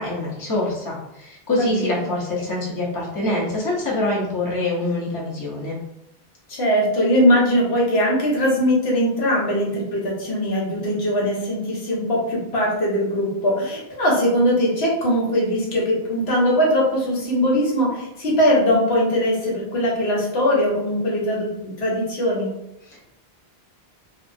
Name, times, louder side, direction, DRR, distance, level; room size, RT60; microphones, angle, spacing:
voice 1, 0.0-5.8 22.9-23.1, left 2 dB, 20° left, -5 dB, 0.7 m, -25 dB
voice 2, 1.6-2.1 6.5-22.5, equal, 75° left, -4 dB, 1.1 m, -21 dB
2.9 x 2.4 x 2.6 m, 0.82 s
omnidirectional pair, 1.1 m